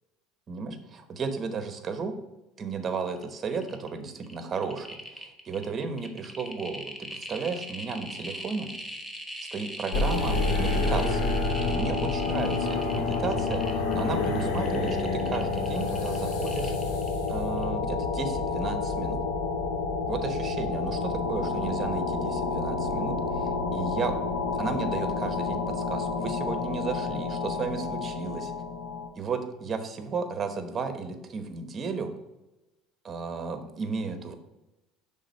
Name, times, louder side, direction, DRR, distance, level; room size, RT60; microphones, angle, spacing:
voice 1, 0.5-2.2 2.6-8.7 9.5-11.3 11.7-17.0 17.3-19.2 20.1-24.2 24.6-28.5 29.2-32.1 33.0-34.3, right 4 dB, 35° right, 8 dB, 1.0 m, -34 dB
sound 1, 3.2-3.3 3.5-3.9 4.2-17.3 17.6-17.7, equal, 10° left, 1.1 m, -40 dB
sound 2, 9.9-29.1, left 3 dB, 75° left, 0.9 m, -29 dB
6.0 x 3.7 x 5.3 m, 1.0 s
supercardioid pair, 90°, 0 cm